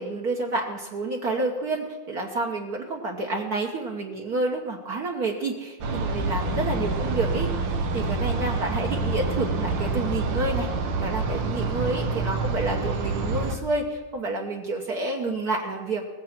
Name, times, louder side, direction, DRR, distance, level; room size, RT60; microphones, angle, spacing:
voice 1, 0.0-10.7 11.0-16.0, right 2 dB, 60° right, 0 dB, 1.5 m, -29 dB
sound 1, 5.8-13.6, right 3 dB, 80° right, 1.6 m, -27 dB
18.5 x 7.6 x 5.8 m, 1.3 s
omnidirectional pair, 2.0 m